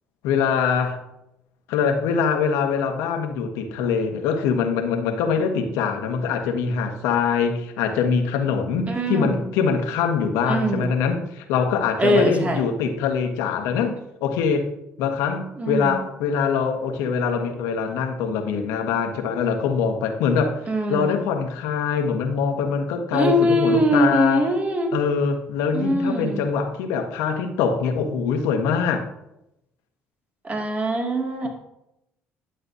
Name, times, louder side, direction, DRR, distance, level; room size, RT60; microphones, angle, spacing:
voice 1, 0.2-1.0 1.7-14.7 15.0-20.6 20.9-24.5 24.9-29.0, left 6 dB, 85° left, 5 dB, 1.2 m, -23 dB
voice 2, 8.9-9.4 10.5-10.9 12.0-12.6 15.6-16.0 20.7-21.2 23.1-24.9 25.7-26.5 30.4-31.5, equal, 30° right, 1 dB, 2.2 m, -22 dB
11.0 x 7.7 x 2.7 m, 0.85 s
supercardioid pair, 70°, 5 cm